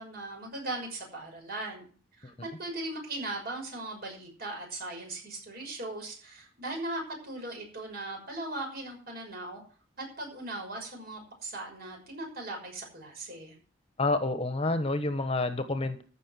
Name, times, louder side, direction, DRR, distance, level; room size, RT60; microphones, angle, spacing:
voice 1, 0.0-1.9 2.2-9.6 10.0-13.6, right 2 dB, 55° right, 1 dB, 6.2 m, -38 dB
voice 2, 14.0-16.0, left 2 dB, 30° left, 10 dB, 1.1 m, -28 dB
14.0 x 6.2 x 7.5 m, 0.42 s
head